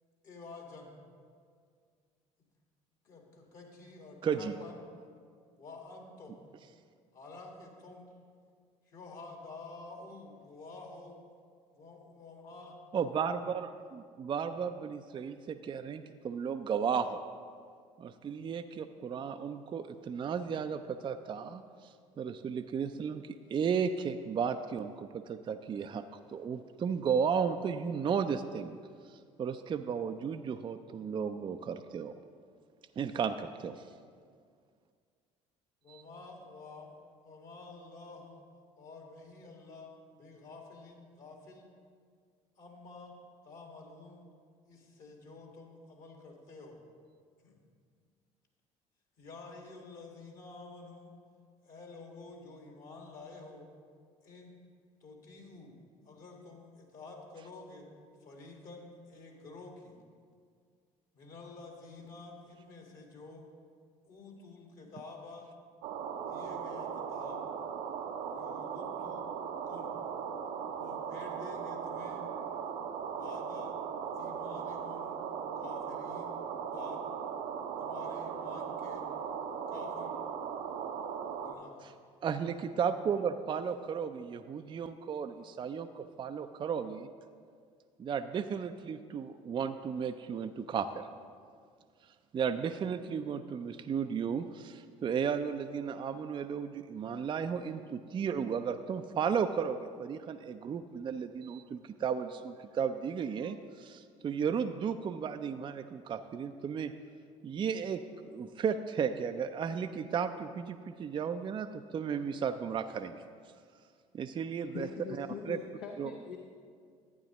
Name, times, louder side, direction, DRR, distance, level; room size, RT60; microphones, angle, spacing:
voice 1, 0.2-1.0 3.0-4.9 5.6-6.4 7.1-8.1 8.9-11.2 11.7-12.8 35.8-37.0 37.2-38.4 38.8-41.7 42.6-43.1 43.4-44.2 44.6-46.8 47.4-47.6 49.2-51.2 51.6-53.7 54.2-54.6 55.0-55.8 56.0-57.9 58.2-60.0 61.1-63.5 64.0-65.5 66.2-67.5 68.3-69.3 69.7-70.0 70.7-72.3 73.1-73.8 74.2-75.2 75.6-76.3 76.6-77.0 77.8-79.1 79.7-80.1 81.3-81.9, left 3 dB, 55° left, 1 dB, 1.9 m, -49 dB
voice 2, 4.2-4.5 12.9-17.2 18.0-26.0 26.3-28.8 29.1-32.1 33.0-33.9 35.9-36.0 81.8-81.9 82.2-87.1 88.0-91.1 92.3-106.9 107.4-108.0 108.3-113.2 114.1-114.9 115.2-115.6 116.0-116.1, right 7 dB, 30° right, 8 dB, 0.4 m, -34 dB
sound 1, 65.8-81.5, right 7 dB, 65° right, 0.6 m, -38 dB
voice 3, 114.6-116.4, left 5 dB, 70° left, 0 dB, 0.8 m, -42 dB
11.5 x 9.0 x 3.0 m, 2.1 s
hypercardioid pair, 60°, 17 cm